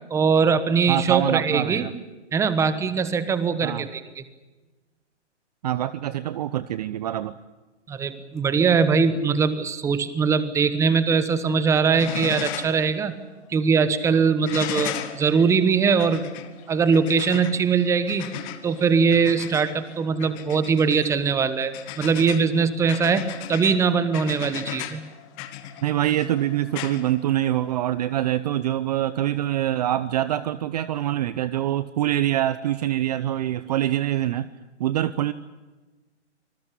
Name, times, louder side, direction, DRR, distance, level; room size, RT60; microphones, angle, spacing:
voice 1, 0.1-1.8 2.3-4.2 7.9-13.2 13.5-16.3 16.7-18.4 18.6-25.0, right 5 dB, 10° right, 14 dB, 1.1 m, -21 dB
voice 2, 0.9-1.9 3.6-3.8 5.6-7.3 25.8-34.5 34.8-35.3, right 12 dB, 35° right, 16 dB, 0.7 m, -25 dB
sound 1, 11.3-11.6 11.9-12.8 13.2-13.3 14.4-27.8 29.2-29.3, left 12 dB, 30° left, 1.8 m, -36 dB
26.5 x 20.0 x 8.4 m, 1.2 s
hypercardioid pair, 140°, 36 cm